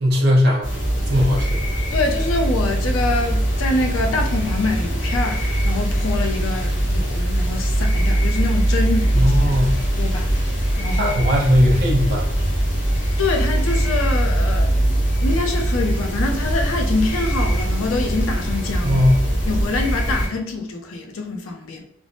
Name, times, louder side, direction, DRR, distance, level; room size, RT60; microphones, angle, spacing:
voice 1, 0.0-0.7 1.1-1.6 9.1-9.8 11.0-12.3 18.8-19.2, left 1 dB, 50° right, 0.7 m, -18 dB
sound 1, 0.6-20.3, right 1 dB, 55° left, 1.0 m, -21 dB
voice 2, 1.9-9.4 10.0-10.4 10.8-11.2 13.2-19.0 19.4-21.9, left 3 dB, 85° left, 0.5 m, -25 dB
3.3 x 2.0 x 2.6 m
head